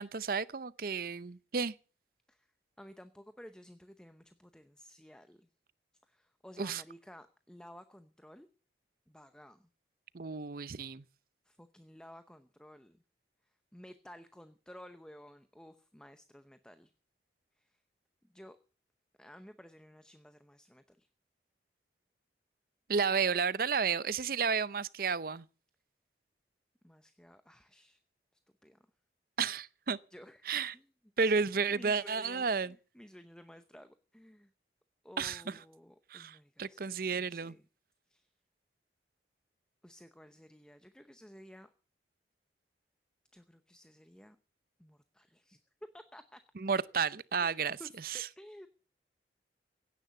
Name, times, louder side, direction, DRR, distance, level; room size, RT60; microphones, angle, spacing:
voice 1, 0.0-1.7 6.6-6.8 10.1-11.0 22.9-25.4 29.4-30.0 30.5-30.7 31.2-32.7 35.2-35.6 36.1-37.5 46.6-47.8 48.0-48.3, right 5 dB, 55° right, 0.7 m, -32 dB
voice 2, 2.8-5.5 6.1-8.5 9.1-9.7 11.4-13.0 13.4-16.9 17.6-17.8 18.3-18.6 19.2-21.1 26.8-28.0 28.6-28.8 30.1-30.8 31.2-34.5 35.0-37.6 38.1-38.3 39.8-41.7 43.3-44.4 44.8-45.6 45.9-46.4 47.8-48.7, equal, 5° left, 0.8 m, -54 dB
17.0 x 10.5 x 7.0 m
head